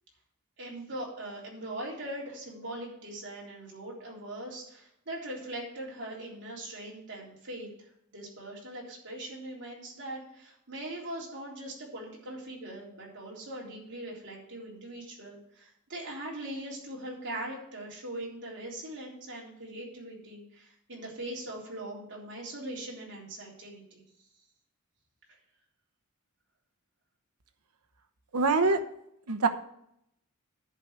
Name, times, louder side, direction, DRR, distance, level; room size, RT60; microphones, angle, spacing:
voice 1, 0.6-24.3 25.3-25.4, right 1 dB, 55° right, -3 dB, 3.6 m, -41 dB
voice 2, 28.3-28.8 29.3-29.5, right 3 dB, 85° right, 6 dB, 1.0 m, -24 dB
10.5 x 5.0 x 8.0 m, 0.74 s
head